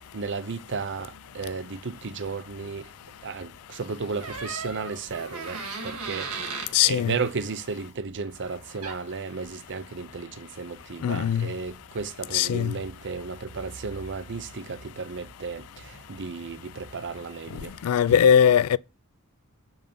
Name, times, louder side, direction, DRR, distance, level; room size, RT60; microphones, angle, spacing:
voice 1, 0.1-2.9 3.2-6.3 6.5-17.7 18.1-18.3, right 4 dB, 55° right, 0.7 m, -34 dB
Door, 4.2-6.8 8.5-8.6 8.8-9.2, right 4 dB, 75° right, 2.0 m, -36 dB
voice 2, 6.7-7.2 11.0-11.5 12.3-12.7 17.8-18.8, left 8 dB, 75° left, 0.3 m, -20 dB
6.9 x 5.6 x 5.4 m
head